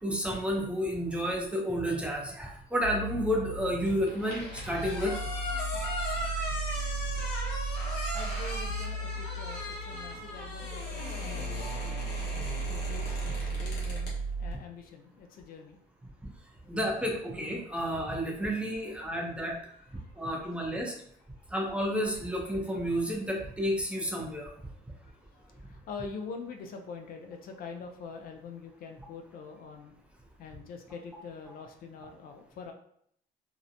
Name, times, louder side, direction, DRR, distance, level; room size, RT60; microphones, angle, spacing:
voice 1, 0.0-5.2 16.7-19.6 20.2-20.9 21.5-24.5, equal, 5° right, -1 dB, 0.6 m, -31 dB
sound 1, 2.8-14.5, right 3 dB, 70° right, 0.8 m, -36 dB
sound 2, 3.9-14.2, left 1 dB, 75° left, 1.0 m, -38 dB
voice 2, 8.1-12.1 12.6-15.8 19.7-20.2 21.4-21.5 25.0-29.9 30.4-32.7, left 5 dB, 60° left, 5 dB, 0.4 m, -45 dB
2.7 x 2.1 x 2.5 m, 0.67 s
cardioid pair, 110°, 17 cm